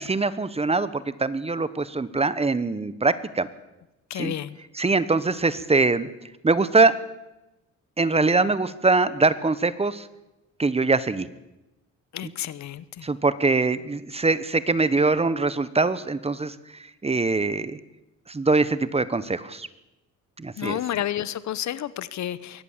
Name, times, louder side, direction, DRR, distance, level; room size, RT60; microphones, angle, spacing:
voice 1, 0.0-3.5 4.1-4.4 4.7-6.1 6.4-7.0 8.0-10.0 10.6-11.3 12.2-12.3 13.0-16.5 17.0-17.8 18.3-19.7 20.4-20.8, right 3 dB, 20° right, 15 dB, 1.1 m, -23 dB
voice 2, 4.1-4.5 12.1-12.8 20.6-22.6, left 11 dB, 65° left, 17 dB, 1.1 m, -30 dB
23.0 x 17.0 x 7.4 m, 0.97 s
cardioid pair, 90°, 30 cm